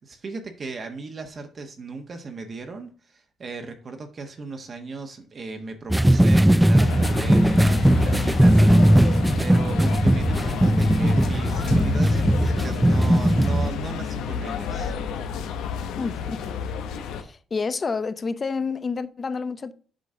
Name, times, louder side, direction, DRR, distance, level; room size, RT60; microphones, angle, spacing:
voice 1, 0.0-14.9, right 3 dB, 45° right, 1.3 m, -37 dB
sound 1, 5.9-13.7, right 1 dB, 5° right, 0.3 m, -18 dB
sound 2, 6.8-17.2, left 6 dB, 90° left, 0.8 m, -30 dB
voice 2, 16.0-16.5 17.2-19.7, left 4 dB, 35° left, 0.6 m, -29 dB
7.7 x 5.2 x 3.8 m
cardioid pair, 90°, 0 cm